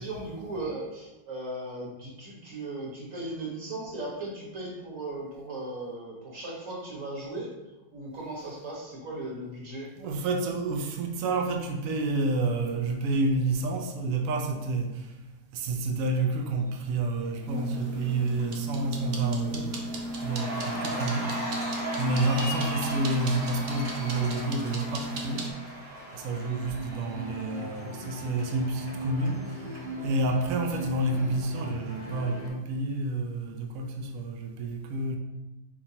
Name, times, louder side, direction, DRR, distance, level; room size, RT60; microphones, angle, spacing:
voice 1, 0.0-7.5 7.9-9.9 20.5-20.8, right 2 dB, 50° right, -4 dB, 1.5 m, -37 dB
voice 2, 10.0-15.1 15.5-19.7 20.2-21.3 22.0-25.5 26.1-29.6 30.0-35.2, right 2 dB, 90° right, 3 dB, 0.7 m, -29 dB
sound 1, 17.5-25.5, right 1 dB, 65° right, 0.9 m, -35 dB
Cheering, 17.6-18.0 18.4-32.5, equal, 35° right, 1.2 m, -37 dB
4.5 x 3.5 x 2.8 m, 1.0 s
omnidirectional pair, 2.0 m